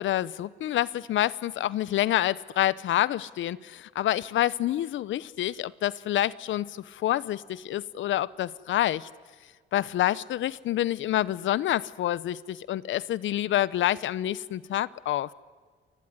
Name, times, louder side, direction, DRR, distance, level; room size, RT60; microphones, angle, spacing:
voice 1, 0.0-9.1 9.7-15.3, left 13 dB, 75° left, 0.9 m, -27 dB
28.5 x 20.5 x 9.8 m
cardioid pair, 90°, 20 cm